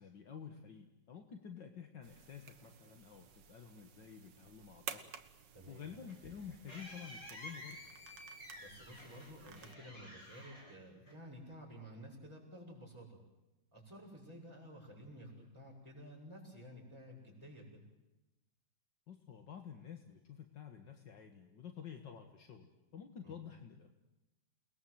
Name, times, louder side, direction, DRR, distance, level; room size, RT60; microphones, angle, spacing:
voice 1, 0.0-5.1 5.7-7.8 19.1-23.9, left 7 dB, 70° left, 5 dB, 2.3 m, -50 dB
sound 1, 2.0-9.7, right 7 dB, 70° right, 2.0 m, -53 dB
voice 2, 5.5-5.9 8.6-13.2 13.7-17.8 23.2-23.4, equal, 10° right, -6 dB, 6.5 m, -53 dB
sound 2, 5.7-11.5, left 1 dB, 45° left, 6.5 m, -53 dB
29.0 x 21.0 x 8.0 m, 1.0 s
omnidirectional pair, 2.0 m